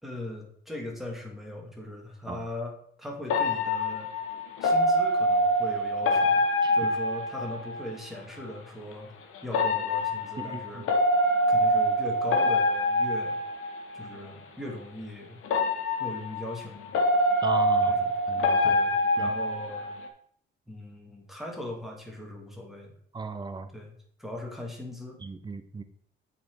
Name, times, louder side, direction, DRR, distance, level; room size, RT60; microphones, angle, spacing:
voice 1, 0.0-4.1 4.6-6.4 6.7-9.1 9.4-10.9 11.5-13.4 13.9-15.4 16.0-17.0 17.9-18.1 18.6-19.9 20.7-22.9 23.7-23.9 24.2-25.2, left 1 dB, ahead, -1 dB, 2.0 m, -39 dB
sound 1, 3.3-7.9 9.5-14.1 15.4-20.1, left 1 dB, 80° left, 1.1 m, -25 dB
voice 2, 10.4-10.8 17.4-18.0 18.3-18.8 19.2-19.3 23.1-23.7 25.2-25.8, right 4 dB, 20° right, 10 dB, 0.7 m, -36 dB
8.4 x 4.3 x 4.6 m, 0.62 s
cardioid pair, 125°, 21 cm